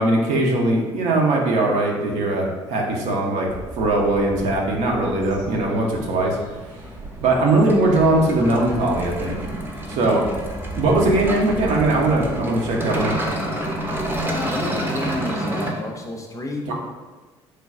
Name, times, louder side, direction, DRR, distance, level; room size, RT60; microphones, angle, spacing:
voice 1, 0.0-3.5 3.7-6.4 7.2-9.4 9.9-10.3 10.8-13.2 16.7-16.8, right 2 dB, 55° right, 0 dB, 0.7 m, -20 dB
sound 1, 3.5-15.2, right 2 dB, 70° right, 1.0 m, -37 dB
sound 2, 6.6-15.7, right 1 dB, 15° right, 0.7 m, -29 dB
voice 2, 14.3-16.6, left 2 dB, 20° left, 1 dB, 0.5 m, -30 dB
3.2 x 2.3 x 3.6 m, 1.3 s
figure-of-eight pair, 50°, 14 cm